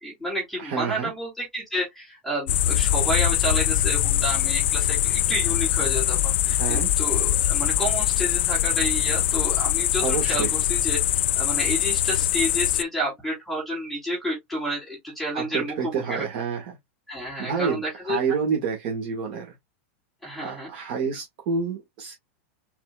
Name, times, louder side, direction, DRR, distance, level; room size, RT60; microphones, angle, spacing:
voice 1, 0.0-16.2 17.1-18.2 20.2-20.7, right 1 dB, ahead, 2.9 m, -30 dB
voice 2, 0.6-1.1 6.5-6.9 10.0-10.5 15.3-16.8 17.4-19.5 20.4-22.1, right 6 dB, 45° right, 1.9 m, -28 dB
sound 1, 2.5-12.8, left 12 dB, 70° left, 0.4 m, -23 dB
4.3 x 4.0 x 2.4 m
supercardioid pair, 175°, 7 cm